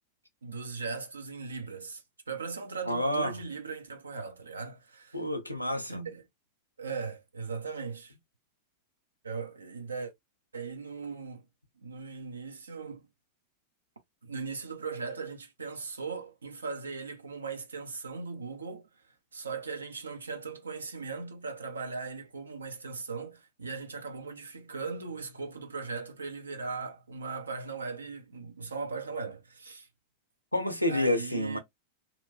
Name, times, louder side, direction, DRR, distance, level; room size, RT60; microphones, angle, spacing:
voice 1, 0.4-5.2 5.9-6.2 6.8-8.1 9.2-10.1 10.5-11.4 11.8-13.1 14.2-18.9 19.3-29.9 30.9-31.6, right 4 dB, 75° right, 0.5 m, -38 dB
voice 2, 2.9-3.4 5.1-6.1 30.5-31.6, left 1 dB, 90° left, 0.6 m, -29 dB
2.9 x 2.5 x 2.5 m
figure-of-eight pair, 90°, 0 cm